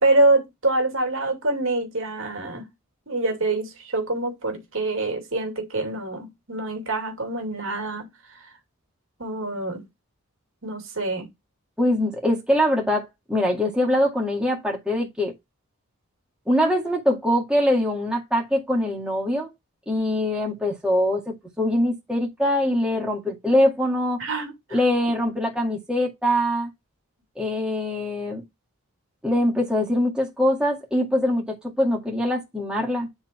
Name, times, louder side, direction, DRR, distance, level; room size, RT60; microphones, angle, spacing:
voice 1, 0.0-2.7 3.1-8.1 9.2-9.8 10.6-11.3 24.2-24.8, right 2 dB, 65° right, 2.6 m, -25 dB
voice 2, 11.8-15.3 16.5-19.5 19.9-24.2 24.7-26.7 27.4-28.4 29.2-33.1, left 1 dB, 5° right, 2.1 m, -23 dB
9.6 x 4.0 x 4.4 m
head